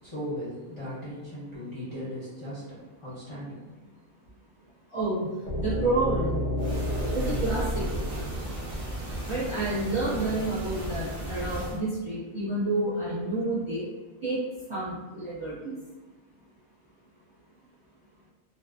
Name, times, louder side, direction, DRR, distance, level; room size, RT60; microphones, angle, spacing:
voice 1, 0.0-3.7, equal, 30° left, -11 dB, 0.7 m, -38 dB
voice 2, 4.9-6.4 7.1-7.9 9.3-13.8 14.2-14.4 14.7-15.8, right 2 dB, 25° right, -9 dB, 0.8 m, -29 dB
sound 1, 5.5-9.4, left 1 dB, 85° left, 0.4 m, -31 dB
sound 2, 6.6-11.8, equal, 85° right, 0.3 m, -35 dB
2.4 x 2.1 x 2.4 m, 1.2 s
omnidirectional pair, 1.4 m